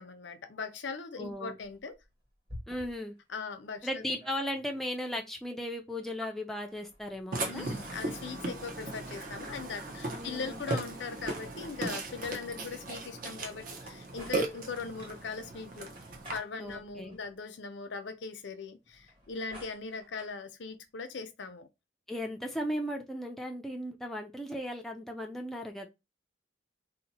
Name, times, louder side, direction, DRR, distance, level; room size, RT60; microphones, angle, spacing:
voice 1, 0.0-2.0 3.3-4.0 7.5-15.9 16.3-21.7, left 4 dB, 75° left, 0.6 m, -40 dB
voice 2, 1.2-1.6 2.7-3.1 3.8-7.7 10.1-10.6 16.6-17.2 22.1-25.9, equal, ahead, 0.4 m, -36 dB
sound 1, 1.6-3.2 3.6-3.7 3.9-5.0 6.6-8.5 10.4-12.1 13.4-15.2 16.0-17.4 18.8-20.4, equal, 30° right, 1.1 m, -52 dB
Burping eructation, 7.3-16.4, right 2 dB, 45° right, 0.7 m, -37 dB
2.7 x 2.1 x 4.1 m
head